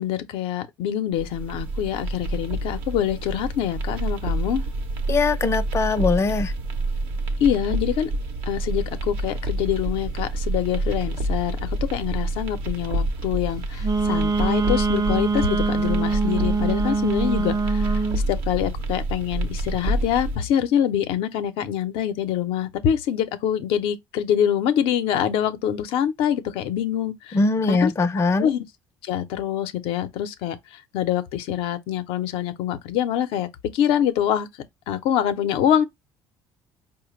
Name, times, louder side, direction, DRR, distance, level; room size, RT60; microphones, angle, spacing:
voice 1, 0.0-4.6 7.4-8.1 8.5-11.6 11.9-18.0 18.3-27.4 27.7-27.9 28.4-28.6 29.0-30.6 30.9-34.5 34.9-35.8, left 10 dB, 80° left, 0.6 m, -25 dB
sound 1, 1.1-20.3, right 2 dB, 80° right, 0.8 m, -28 dB
voice 2, 5.1-6.5 27.3-28.5, left 3 dB, 30° left, 0.5 m, -21 dB
Wind instrument woodwind instrument, 13.8-18.2, right 3 dB, 40° right, 0.6 m, -23 dB
4.9 x 2.1 x 3.1 m
supercardioid pair, 80°, 9 cm